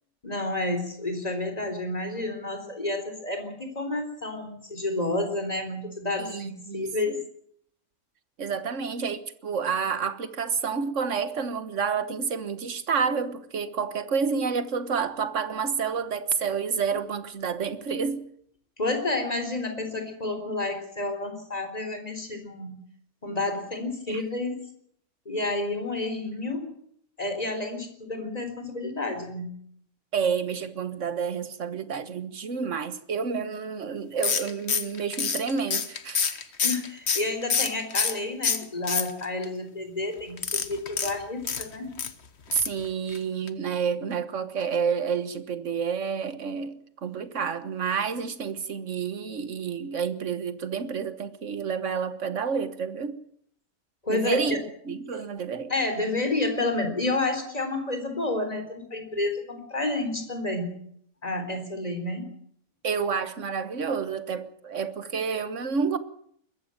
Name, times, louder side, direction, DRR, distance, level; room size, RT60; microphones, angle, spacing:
voice 1, 0.2-7.2 18.8-22.8 23.2-24.6 25.3-26.7 27.2-29.5 36.6-41.9 54.0-54.6 55.7-60.8 61.2-62.3, left 2 dB, 25° left, 4.0 m, -30 dB
voice 2, 6.2-7.2 8.4-18.3 24.1-24.2 30.1-36.4 42.6-53.2 54.1-54.6 54.8-55.7 62.8-66.0, right 6 dB, 55° right, 1.7 m, -29 dB
sound 1, 34.2-38.2 38.4-39.4 40.4-42.1 42.5-42.8 43.1-43.2 43.5-43.6, left 6 dB, 50° left, 1.5 m, -27 dB
22.0 x 14.0 x 9.1 m
omnidirectional pair, 1.5 m